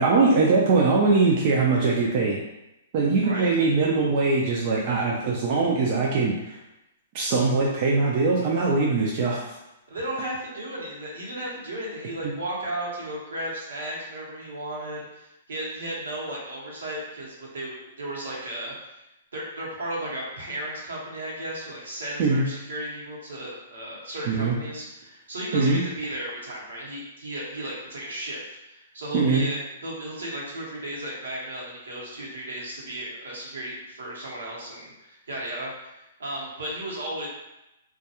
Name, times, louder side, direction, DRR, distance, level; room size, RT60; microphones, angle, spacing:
voice 1, 0.0-2.4 2.9-6.6 7.1-9.6 12.2-12.3 22.2-22.4 24.3-24.5 25.5-25.8 29.1-29.4, right 3 dB, 45° right, -3 dB, 0.4 m, -22 dB
voice 2, 9.9-19.0 19.3-37.3, right 1 dB, 80° right, -4 dB, 0.9 m, -34 dB
2.3 x 2.2 x 2.8 m, 0.93 s
hypercardioid pair, 130°, 0 cm